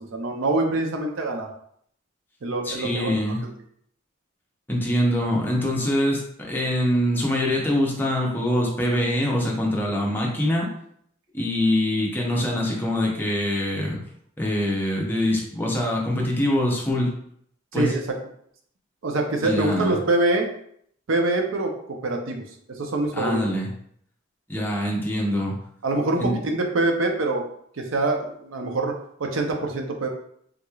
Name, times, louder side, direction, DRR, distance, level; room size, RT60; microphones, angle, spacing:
voice 1, 0.1-1.5 2.4-3.2 17.7-18.0 19.0-20.5 21.1-22.4 22.8-23.4 25.8-27.4 27.8-30.1, right 2 dB, 90° right, 3 dB, 0.6 m, -24 dB
voice 2, 2.6-3.4 4.7-10.7 11.3-14.0 14.4-17.1 17.7-17.9 19.4-20.0 23.1-23.7 24.5-25.6 26.2-26.3, left 1 dB, 10° left, -2 dB, 0.6 m, -24 dB
3.6 x 3.0 x 2.3 m, 0.67 s
head